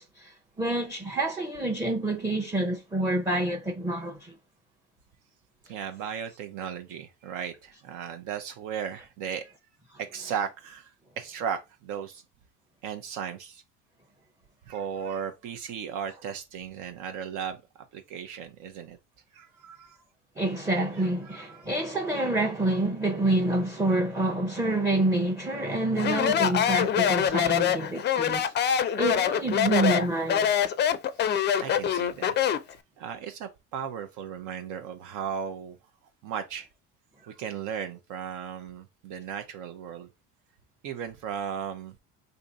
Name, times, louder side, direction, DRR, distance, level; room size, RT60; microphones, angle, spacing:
voice 1, 0.0-4.3 20.4-30.5, right 2 dB, 10° right, 0.6 m, -27 dB
voice 2, 5.7-9.6 10.0-12.2 12.8-13.6 14.6-17.6 17.9-19.0 19.3-20.1 21.0-21.7 31.1-32.4 32.7-35.8 36.2-36.7 37.2-40.1 40.8-42.0, right 8 dB, 70° right, 0.6 m, -36 dB
Speech, 26.0-32.7, left 9 dB, 35° left, 0.4 m, -24 dB
2.6 x 2.6 x 4.0 m
supercardioid pair, 95°, 32 cm